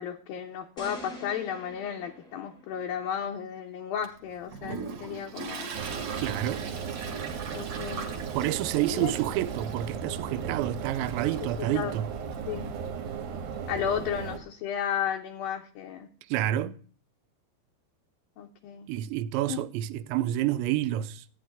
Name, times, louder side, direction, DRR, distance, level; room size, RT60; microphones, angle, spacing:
voice 1, 0.0-5.7 7.5-8.1 8.9-9.1 11.7-11.9 12.5-12.7 13.7-16.1 18.4-18.9 19.5-19.6, left 8 dB, 75° left, 2.2 m, -33 dB
sound 1, 0.8-3.1, equal, ahead, 1.2 m, -46 dB
Toilet flush, 4.0-14.3, right 5 dB, 50° right, 2.6 m, -41 dB
sound 2, 5.7-14.4, right 6 dB, 65° right, 2.8 m, -36 dB
voice 2, 6.2-6.7 8.3-12.1 16.3-16.8 18.9-21.2, right 13 dB, 85° right, 2.9 m, -29 dB
15.0 x 9.5 x 3.6 m
omnidirectional pair, 5.1 m